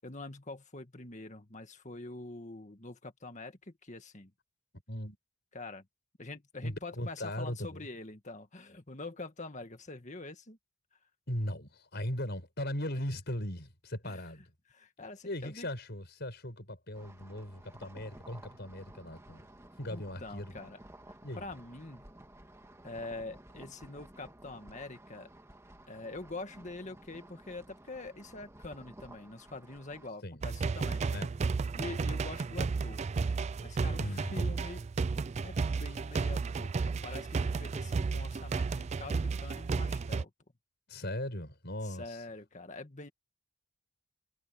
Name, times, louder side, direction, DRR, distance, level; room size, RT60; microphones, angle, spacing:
voice 1, 0.0-4.3 5.5-5.9 6.2-10.6 14.0-14.2 14.7-15.7 19.9-20.8 21.1-22.1 22.8-25.3 25.9-31.0 31.7-33.0 33.6-34.8 35.4-40.3 41.8-43.1, left 2 dB, 35° left, 2.0 m, -45 dB
voice 2, 6.6-7.9 11.3-14.4 15.2-19.4 19.8-20.5 21.2-21.5 30.2-30.4 31.1-31.4 34.0-34.5 40.9-42.2, left 1 dB, 50° left, 6.0 m, -38 dB
sound 1, 16.9-30.1, right 1 dB, 15° right, 2.1 m, -54 dB
sound 2, 30.4-40.2, right 4 dB, 30° right, 0.3 m, -33 dB
head